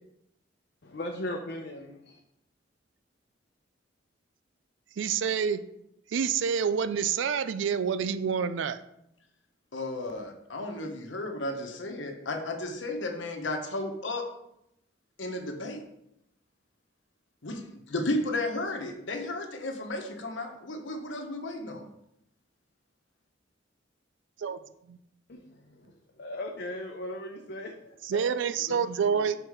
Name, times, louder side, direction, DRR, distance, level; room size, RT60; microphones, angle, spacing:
voice 1, 0.8-2.2 25.3-28.4 28.7-29.2, left 1 dB, 60° left, 1 dB, 0.7 m, -39 dB
voice 2, 5.0-5.6 6.1-8.8 24.4-24.6 24.9-25.0 28.0-29.4, right 6 dB, 75° right, 13 dB, 0.4 m, -27 dB
voice 3, 9.7-14.2 15.2-15.8 17.4-21.9, left 2 dB, 75° left, 4 dB, 1.0 m, -33 dB
6.4 x 4.5 x 4.9 m, 0.80 s
head